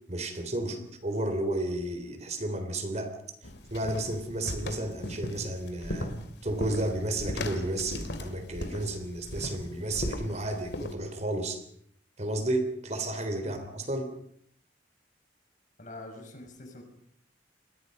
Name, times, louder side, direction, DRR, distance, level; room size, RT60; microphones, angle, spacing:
voice 1, 0.1-3.2 3.7-6.1 6.4-11.6 12.2-14.1, right 1 dB, 40° right, 7 dB, 3.4 m, -32 dB
sound 1, 3.4-10.9, left 1 dB, 65° left, 2.7 m, -37 dB
voice 2, 15.8-16.8, left 1 dB, 45° left, 4 dB, 5.8 m, -45 dB
29.5 x 22.0 x 5.4 m, 0.67 s
head